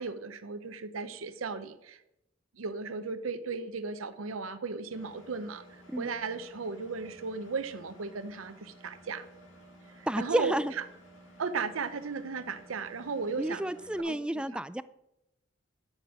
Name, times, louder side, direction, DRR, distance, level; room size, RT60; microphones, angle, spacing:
voice 1, 0.0-2.0 2.5-9.3 10.0-10.8 11.4-13.7 14.0-14.6, right 4 dB, 90° right, 11 dB, 0.7 m, -36 dB
Engine, 4.9-14.0, equal, 70° left, 3.0 m, -55 dB
voice 2, 10.1-10.7 13.4-14.8, right 1 dB, 5° right, 14 dB, 0.3 m, -30 dB
11.5 x 6.7 x 6.0 m, 0.87 s
head